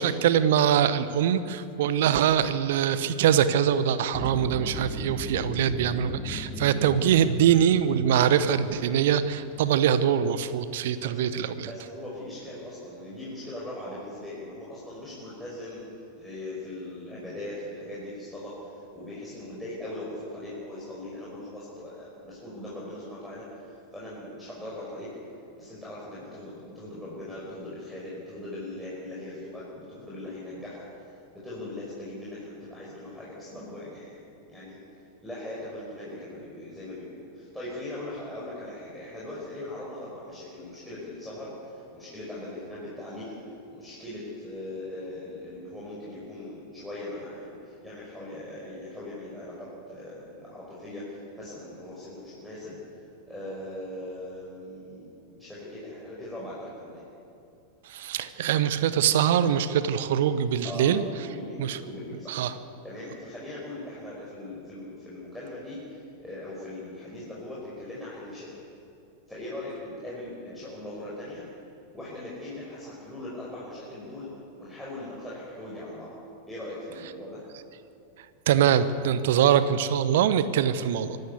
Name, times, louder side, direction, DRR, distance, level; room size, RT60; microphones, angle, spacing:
voice 1, 0.0-11.7 57.9-61.0 61.6-61.8 62.3-62.5 78.5-81.2, right 9 dB, 55° right, 13 dB, 1.0 m, -23 dB
sound 1, 4.1-10.4, left 3 dB, 20° left, 2.5 m, -39 dB
voice 2, 11.7-15.8 16.2-25.1 25.6-30.8 31.3-34.2 34.5-34.8 35.2-52.8 53.3-57.0 60.6-62.4 62.8-68.5 69.3-71.5 71.9-74.3 74.6-76.1 76.5-77.5, left 1 dB, 5° left, -8 dB, 5.6 m, -40 dB
25.0 x 13.5 x 8.4 m, 2.7 s
figure-of-eight pair, 90°, 0 cm